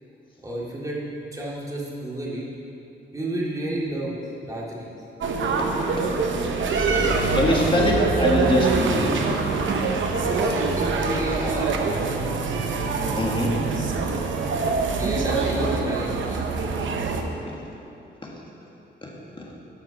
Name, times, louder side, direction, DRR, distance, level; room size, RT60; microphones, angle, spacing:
voice 1, 0.4-1.0 1.3-2.5 3.1-4.2 4.4-5.0 10.1-11.7 14.4-14.5 14.9-16.4, right 1 dB, 15° right, -5 dB, 2.2 m, -30 dB
sound 1, 5.2-17.2, right 4 dB, 90° right, 0.9 m, -24 dB
voice 2, 6.6-9.2 12.9-13.6 19.0-19.1, left 1 dB, 25° left, -2 dB, 1.8 m, -24 dB
13.0 x 6.0 x 5.8 m, 2.8 s
wide cardioid pair, 115°, 19 cm